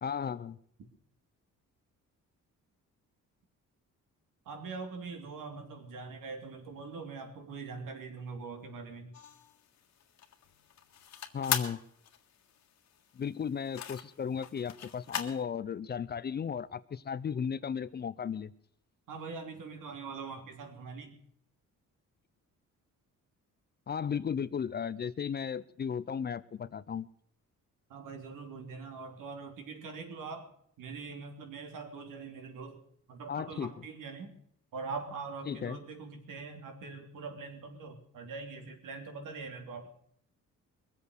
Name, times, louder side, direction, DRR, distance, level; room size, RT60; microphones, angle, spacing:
voice 1, 0.0-0.6 11.3-11.8 13.1-18.5 23.9-27.1 33.3-33.7 35.5-35.8, left 7 dB, 30° left, 17 dB, 0.5 m, -35 dB
voice 2, 4.4-9.1 19.1-21.2 27.9-30.5 30.8-32.8 33.1-34.3 34.7-39.9, right 4 dB, 80° right, 4 dB, 3.3 m, -43 dB
sound 1, 9.1-15.4, left 9 dB, 60° left, 1.7 m, -39 dB
21.5 x 8.2 x 6.5 m, 0.66 s
cardioid pair, 140°, 32 cm